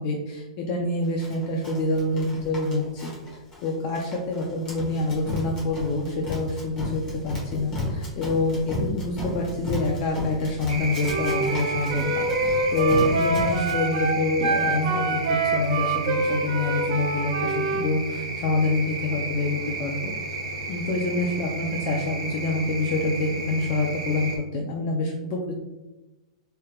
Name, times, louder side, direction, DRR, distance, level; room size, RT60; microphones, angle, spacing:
voice 1, 0.0-3.1 3.6-20.1 20.7-25.6, left 2 dB, 40° left, 0 dB, 0.5 m, -26 dB
Run, 1.2-13.7, left 1 dB, 20° left, 1.3 m, -34 dB
sound 1, 10.7-24.4, right 2 dB, 70° right, 1.0 m, -33 dB
Wind instrument woodwind instrument, 11.1-17.9, right 2 dB, 50° right, 0.8 m, -26 dB
4.3 x 3.4 x 2.4 m, 1.1 s
hypercardioid pair, 145°, 3 cm